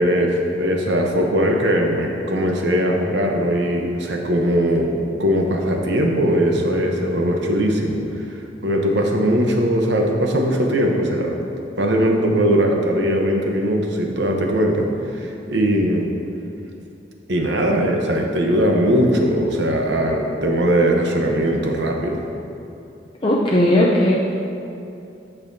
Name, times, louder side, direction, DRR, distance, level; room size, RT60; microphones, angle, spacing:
voice 1, 0.0-4.9 5.2-8.3 8.6-11.4 11.8-14.9 15.1-16.1 17.3-22.2, equal, 80° right, 1 dB, 1.0 m, -20 dB
voice 2, 23.2-24.2, left 1 dB, 30° left, -5 dB, 0.6 m, -16 dB
13.0 x 5.6 x 2.7 m, 2.8 s
head